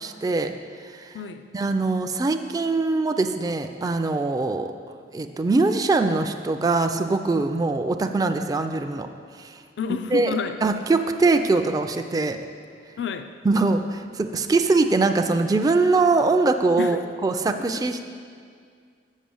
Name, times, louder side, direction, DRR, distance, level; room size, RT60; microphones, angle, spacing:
voice 1, 0.0-0.5 1.0-1.1 1.5-4.7 5.1-9.1 9.4-9.5 10.1-10.3 10.6-12.4 13.4-18.1, right 3 dB, 20° right, 6 dB, 0.3 m, -22 dB
voice 2, 1.1-1.5 9.8-10.6 13.0-13.3 16.8-17.0 17.7-17.8, left 6 dB, 70° left, 9 dB, 0.4 m, -29 dB
7.4 x 5.4 x 7.0 m, 2.1 s
head